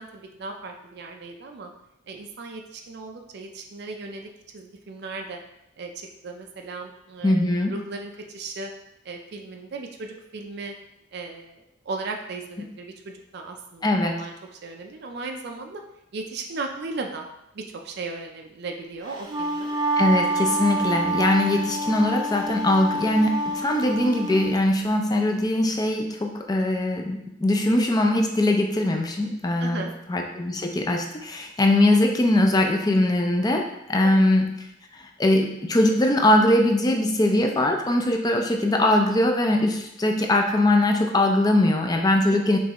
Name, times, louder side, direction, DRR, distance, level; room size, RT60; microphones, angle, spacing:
voice 1, 0.0-1.7 2.1-5.4 5.8-8.7 9.0-10.7 11.1-15.8 16.1-17.3 17.5-19.8 29.6-30.0 34.0-34.3 42.3-42.4, right 3 dB, 55° right, 3 dB, 0.4 m, -36 dB
voice 2, 7.2-7.7 13.8-14.1 20.0-29.8 30.1-34.5 34.9-42.6, left 1 dB, 20° left, 3 dB, 0.4 m, -21 dB
Wind instrument woodwind instrument, 19.1-24.5, right 2 dB, 20° right, 0.7 m, -27 dB
5.3 x 3.2 x 2.9 m, 0.83 s
head